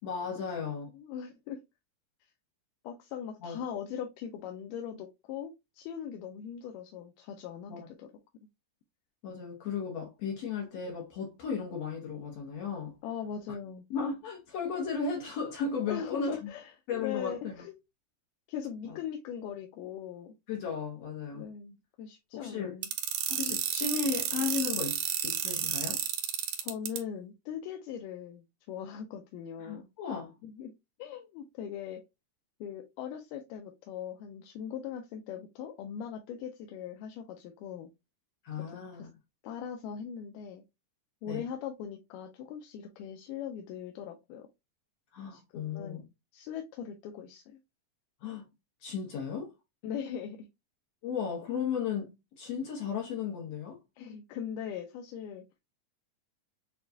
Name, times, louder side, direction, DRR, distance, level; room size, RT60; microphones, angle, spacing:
voice 1, 0.0-0.9 3.4-3.6 7.7-7.9 9.2-12.9 13.9-16.5 16.9-17.6 18.8-19.0 20.5-21.4 22.3-22.8 23.3-26.0 29.6-30.4 38.4-39.1 41.3-41.4 45.1-46.0 48.2-48.5 48.8-49.5 51.0-53.8, left 6 dB, 65° left, 1.7 m, -35 dB
voice 2, 0.9-1.6 2.8-8.1 13.0-13.8 15.9-17.7 18.5-20.3 21.3-22.9 26.6-29.9 30.4-30.7 31.0-32.0 32.6-37.9 38.7-39.1 39.4-40.6 41.2-44.5 45.3-46.1 46.3-47.6 49.8-50.5 54.0-55.4, left 8 dB, 90° left, 2.2 m, -40 dB
sound 1, 22.8-27.0, right 10 dB, 85° right, 2.3 m, -31 dB
6.7 x 2.3 x 2.6 m
omnidirectional pair, 3.7 m